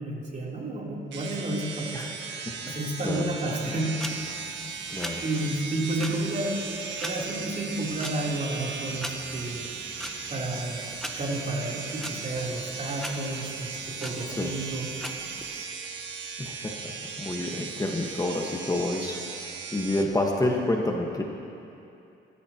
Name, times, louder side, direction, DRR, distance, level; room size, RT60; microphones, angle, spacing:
voice 1, 0.0-2.1 2.6-4.1 5.2-9.7 10.3-13.7 14.0-14.9, right 1 dB, 40° right, -4 dB, 3.6 m, -31 dB
sound 1, 1.1-20.0, right 5 dB, 70° right, 1.6 m, -37 dB
voice 2, 1.9-2.7 3.0-3.3 4.9-5.2 14.4-14.5 16.4-21.2, left 1 dB, 20° left, 0 dB, 1.5 m, -29 dB
sound 2, 4.0-15.7, equal, ahead, 1.3 m, -42 dB
26.0 x 14.0 x 3.0 m, 2.7 s
cardioid pair, 90°, 20 cm